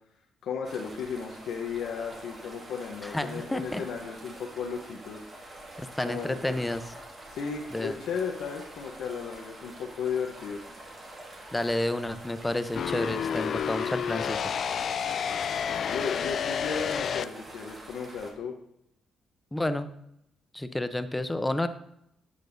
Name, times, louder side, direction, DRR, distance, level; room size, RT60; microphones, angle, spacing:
voice 1, 0.4-5.3 6.1-6.6 7.3-10.6 15.8-18.5, left 6 dB, 80° left, 1 dB, 0.8 m, -35 dB
sound 1, 0.6-18.3, right 1 dB, 35° right, 1.9 m, -46 dB
voice 2, 3.0-3.8 5.8-6.8 7.7-8.0 11.5-14.5 19.5-19.9 20.5-21.7, left 1 dB, 10° left, 10 dB, 0.6 m, -30 dB
sound 2, 12.7-17.2, left 7 dB, 55° left, 0.3 m, -30 dB
9.9 x 6.7 x 2.6 m, 0.78 s
cardioid pair, 90°, 0 cm